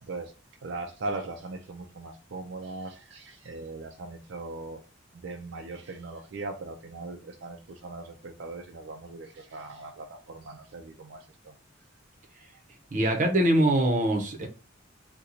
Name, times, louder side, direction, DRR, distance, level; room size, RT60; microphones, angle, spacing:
voice 1, 0.0-0.3 0.6-4.8 5.1-11.6, right 2 dB, 70° right, 0.4 m, -39 dB
voice 2, 12.9-14.5, right 1 dB, 40° right, 0.7 m, -23 dB
2.8 x 2.2 x 3.8 m
head